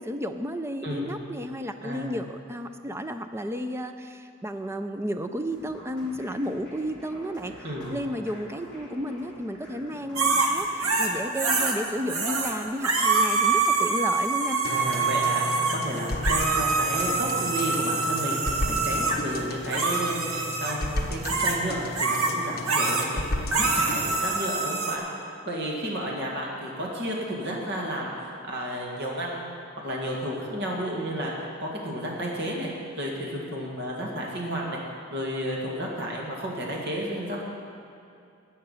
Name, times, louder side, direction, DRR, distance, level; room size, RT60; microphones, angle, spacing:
voice 1, 0.0-7.5 7.9-14.6, equal, 10° right, 8 dB, 0.4 m, -32 dB
sound 1, 5.4-13.1, equal, 5° left, 3.3 m, -46 dB
sound 2, 10.2-11.8 12.1-12.5 12.8-19.2 19.7-20.8 21.2-21.6 22.0-22.3 22.7-23.1 23.5-25.0, right 4 dB, 75° right, 1.2 m, -25 dB
sound 3, 14.6-24.0, left 1 dB, 45° left, 1.2 m, -33 dB
voice 2, 14.7-25.1 25.5-32.7 33.0-34.8 35.1-37.4, equal, 50° right, -2 dB, 2.1 m, -32 dB
13.5 x 8.6 x 5.7 m, 2.6 s
head